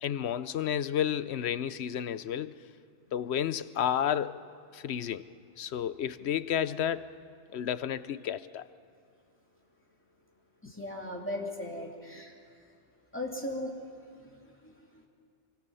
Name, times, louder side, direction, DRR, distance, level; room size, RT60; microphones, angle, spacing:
voice 1, 0.0-2.6 3.1-4.4 4.7-5.3 5.6-7.1 7.5-8.7, left 9 dB, 70° left, 15 dB, 1.0 m, -31 dB
voice 2, 10.6-12.4 13.1-13.8 14.1-15.1, left 1 dB, 10° left, -1 dB, 2.9 m, -38 dB
26.5 x 24.0 x 5.6 m, 2.4 s
omnidirectional pair, 1.2 m